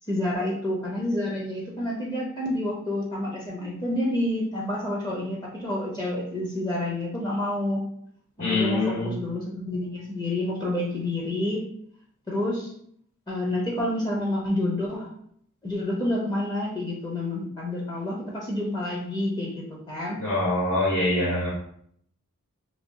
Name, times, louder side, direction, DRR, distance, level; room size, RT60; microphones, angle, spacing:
voice 1, 0.1-7.8 8.4-11.6 12.3-12.7 13.3-15.1 15.6-20.2, left 1 dB, 20° left, -3 dB, 0.5 m, -28 dB
voice 2, 8.4-9.1 20.2-21.5, left 2 dB, 75° left, -8 dB, 1.4 m, -24 dB
2.7 x 2.6 x 3.6 m, 0.66 s
head